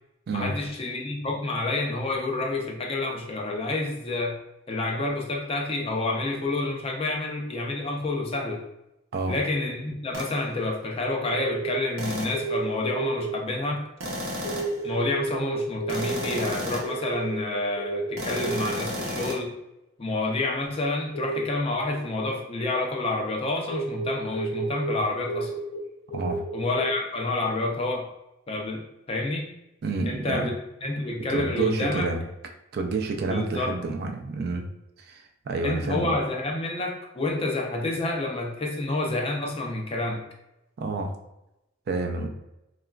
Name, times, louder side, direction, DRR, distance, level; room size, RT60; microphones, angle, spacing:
voice 1, 0.3-4.4 4.7-8.6 9.3-13.8 14.8-19.5 20.0-25.5 26.5-28.1 28.5-28.8 29.1-29.5 30.0-30.5 30.8-32.1 33.3-33.7 35.6-40.2, left 2 dB, 30° left, 0 dB, 0.4 m, -28 dB
sound 1, 10.1-10.4 12.0-12.5 14.0-14.8 15.9-17.0 18.2-19.4, equal, 85° right, 0.7 m, -33 dB
sound 2, 11.2-13.3 14.4-19.1 21.1-21.4 22.3-24.9 25.2-25.8 26.1-26.9, right 3 dB, 65° left, 0.9 m, -32 dB
voice 2, 26.1-26.4 29.8-30.5 31.3-32.2 32.7-34.6 35.0-36.2 40.8-41.1 41.9-42.3, right 3 dB, 50° right, 3 dB, 0.3 m, -29 dB
2.9 x 2.3 x 2.3 m, 0.88 s
head